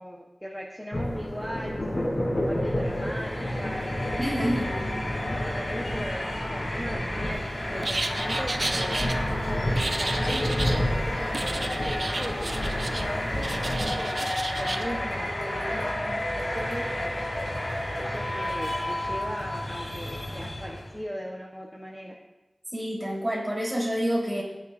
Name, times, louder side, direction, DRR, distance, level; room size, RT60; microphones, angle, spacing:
voice 1, 0.0-3.9 4.5-8.9 9.5-14.1 14.5-17.5 17.9-22.2, equal, 5° left, -2 dB, 1.2 m, -39 dB
sound 1, 0.9-13.9, left 1 dB, 50° left, 3.8 m, -31 dB
sound 2, 2.5-21.0, left 1 dB, 70° left, 3.2 m, -32 dB
voice 2, 4.2-4.7 22.7-24.4, equal, 20° right, -5 dB, 4.2 m, -28 dB
sound 3, 7.8-9.1 9.8-10.8 11.3-13.1 13.4-14.8, right 2 dB, 70° right, 0.7 m, -32 dB
16.5 x 9.6 x 2.7 m, 1.0 s
wide cardioid pair, 55°, 0 cm